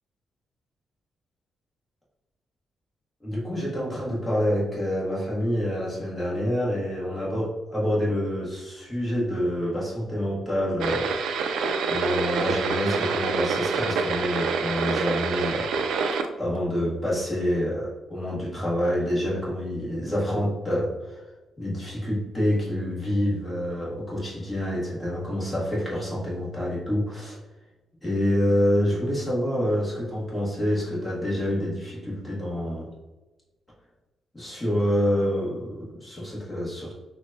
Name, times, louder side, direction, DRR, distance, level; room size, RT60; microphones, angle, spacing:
voice 1, 3.2-11.5 11.9-15.7 16.4-21.3 21.6-27.4 28.0-32.9 34.3-36.9, equal, 10° left, -6 dB, 1.1 m, -27 dB
sound 1, 10.8-16.3, right 5 dB, 85° right, 0.4 m, -26 dB
6.0 x 2.2 x 2.6 m, 1.1 s
wide cardioid pair, 180°, 0 cm